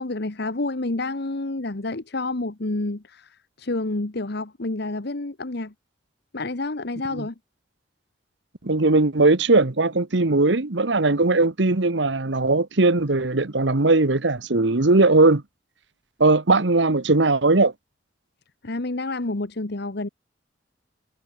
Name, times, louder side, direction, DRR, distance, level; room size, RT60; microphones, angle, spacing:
voice 1, 0.0-5.7 6.3-7.3 18.6-20.1, left 2 dB, 60° left, 1.3 m, -29 dB
voice 2, 8.6-15.4 16.2-17.7, right 2 dB, 70° right, 1.3 m, -19 dB
head